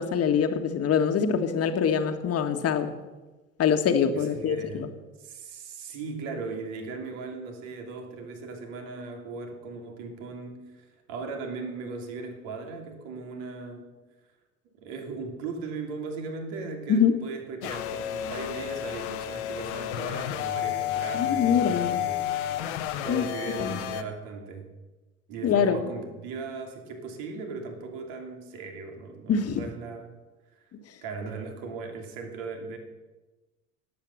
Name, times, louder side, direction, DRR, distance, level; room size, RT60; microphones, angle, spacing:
voice 1, 0.0-2.9 3.6-4.9 16.9-17.2 21.1-22.0 23.1-23.3 23.6-23.8 25.4-25.8 29.3-29.6, left 7 dB, 40° left, 7 dB, 1.7 m, -24 dB
voice 2, 4.1-4.9 5.2-14.0 14.7-22.2 23.0-24.7 25.3-30.2 31.0-32.8, right 4 dB, 55° right, 3 dB, 2.9 m, -38 dB
sound 1, 17.6-24.0, left 11 dB, 60° left, 1.2 m, -31 dB
18.0 x 8.7 x 6.5 m, 1.2 s
figure-of-eight pair, 65°, 39 cm